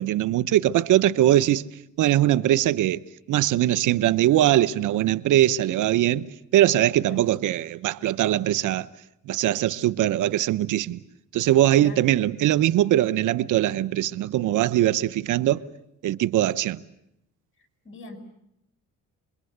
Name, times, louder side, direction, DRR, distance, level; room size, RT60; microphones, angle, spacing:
voice 1, 0.0-1.6 2.0-3.0 3.3-6.3 6.5-8.9 9.3-11.0 11.3-15.6 16.0-16.8, right 13 dB, 80° right, 1.0 m, -21 dB
voice 2, 17.6-18.2, left 3 dB, 40° left, 7.3 m, -43 dB
27.5 x 23.0 x 8.1 m
cardioid pair, 90°, 30 cm